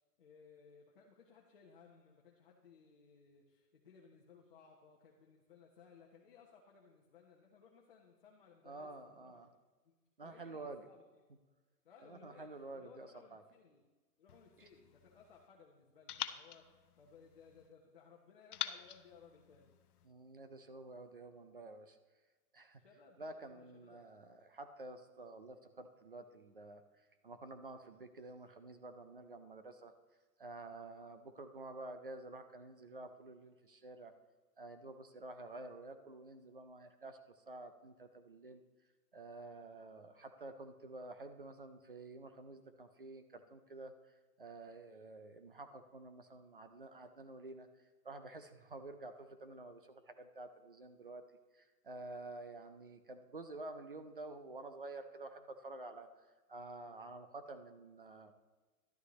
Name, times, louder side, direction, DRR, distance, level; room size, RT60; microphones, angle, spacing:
voice 1, 0.0-9.4 9.8-9.9 10.2-11.0 11.8-12.5 12.7-13.8 14.2-19.8 22.8-24.1, left 5 dB, 35° left, -1 dB, 1.0 m, -62 dB
voice 2, 8.7-9.5 10.2-10.9 12.0-13.4 14.6-14.7 20.0-22.0 22.5-22.8 23.2-29.9 30.4-34.1 34.6-38.6 39.1-51.2 51.5-58.3, right 2 dB, 35° right, 9 dB, 0.5 m, -50 dB
sound 1, 14.3-15.5 16.1-17.7 18.5-20.1, left 10 dB, 70° left, 0.7 m, -46 dB
11.5 x 11.0 x 3.1 m, 1.3 s
hypercardioid pair, 180°, 47 cm